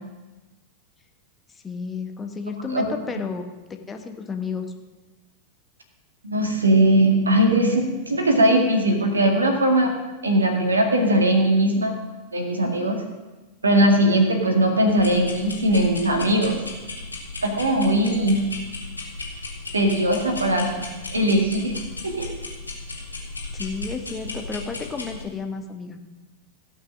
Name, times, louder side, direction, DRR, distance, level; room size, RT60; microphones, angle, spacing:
voice 1, 1.6-4.7 23.5-26.0, left 5 dB, 15° left, 5 dB, 1.2 m, -32 dB
voice 2, 6.2-9.9 10.2-12.0 12.3-13.0 13.6-16.6 17.4-18.4 19.7-20.8 21.1-21.8 22.0-22.3, right 1 dB, 75° right, 3 dB, 2.0 m, -20 dB
sound 1, 14.9-25.2, left 3 dB, 80° left, 2.3 m, -36 dB
16.5 x 5.9 x 6.2 m, 1.2 s
figure-of-eight pair, 90°, 0 cm